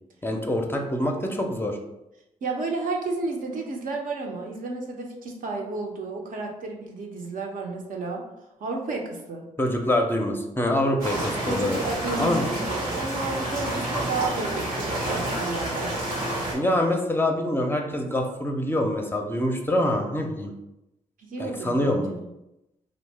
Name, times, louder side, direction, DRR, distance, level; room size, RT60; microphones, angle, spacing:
voice 1, 0.2-1.8 9.6-11.8 12.2-12.4 16.5-20.5 21.4-22.1, left 1 dB, 15° left, 2 dB, 0.5 m, -25 dB
voice 2, 2.4-8.2 8.6-9.4 11.4-16.0 21.2-22.3, right 3 dB, 55° right, 1 dB, 0.6 m, -32 dB
sound 1, 11.0-16.5, right 1 dB, 80° right, 0.8 m, -29 dB
2.6 x 2.0 x 3.2 m, 0.92 s
hypercardioid pair, 40°, 16 cm